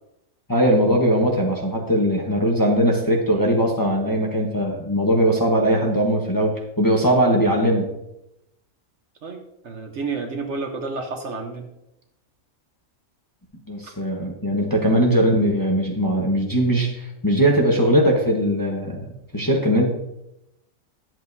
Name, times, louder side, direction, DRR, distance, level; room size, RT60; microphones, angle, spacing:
voice 1, 0.5-7.9 13.7-19.0 19.3-19.9, equal, 15° left, -2 dB, 1.0 m, -20 dB
voice 2, 9.2-11.7, right 4 dB, 60° right, 4 dB, 1.1 m, -30 dB
11.5 x 7.5 x 2.7 m, 0.87 s
omnidirectional pair, 1.5 m